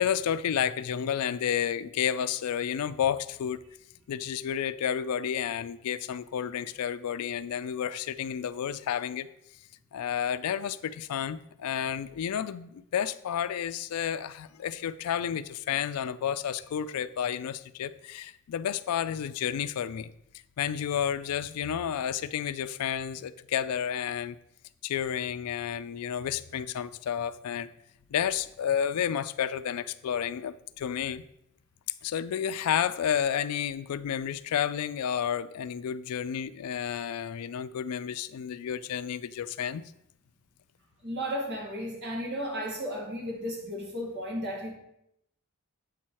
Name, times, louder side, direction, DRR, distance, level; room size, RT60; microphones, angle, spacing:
voice 1, 0.0-3.6 4.1-9.3 9.9-20.1 20.6-24.4 24.8-27.7 28.1-31.2 32.0-39.8, left 9 dB, 85° left, 15 dB, 0.4 m, -31 dB
voice 2, 41.0-44.7, equal, 50° right, -1 dB, 1.9 m, -34 dB
7.7 x 4.3 x 4.6 m, 0.78 s
head